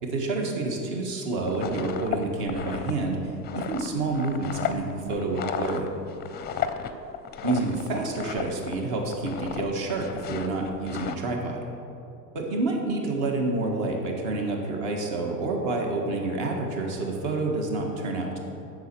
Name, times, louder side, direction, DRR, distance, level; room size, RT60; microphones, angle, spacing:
voice 1, 0.0-3.2 3.5-5.9 7.4-11.7 12.3-18.4, right 2 dB, 55° right, 1 dB, 1.9 m, -28 dB
sound 1, 1.3-8.8 9.1-9.6 9.9-11.2, left 8 dB, 20° left, 0.5 m, -34 dB
8.0 x 6.5 x 6.1 m, 2.8 s
hypercardioid pair, 95°, 49 cm